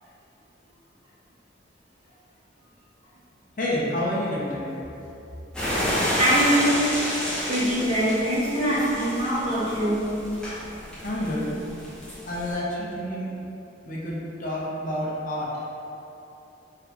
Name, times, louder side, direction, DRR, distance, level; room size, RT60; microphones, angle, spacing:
voice 1, 3.6-4.8 11.0-11.6 12.3-13.3 13.9-15.6, left 1 dB, 45° left, -6 dB, 0.7 m, -29 dB
sound 1, 5.5-12.5, equal, 5° left, 0.9 m, -30 dB
voice 2, 6.2-7.0 7.5-10.1, equal, 35° right, -10 dB, 1.2 m, -23 dB
3.6 x 3.1 x 3.5 m, 2.9 s
head